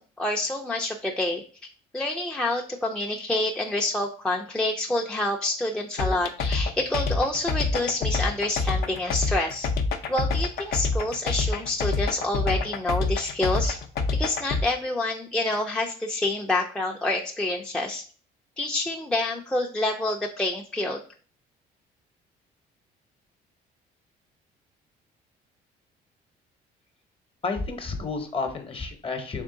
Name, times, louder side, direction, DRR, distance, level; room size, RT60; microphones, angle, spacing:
voice 1, 0.2-1.4 1.9-9.7 10.1-13.8 14.1-18.0 18.6-21.0, left 2 dB, 5° left, 0 dB, 0.4 m, -27 dB
sound 1, 6.0-14.6, left 4 dB, 65° left, 0.6 m, -26 dB
voice 2, 27.4-29.4, left 4 dB, 35° left, 6 dB, 0.8 m, -31 dB
3.6 x 3.2 x 3.7 m, 0.41 s
cardioid pair, 110°, 17 cm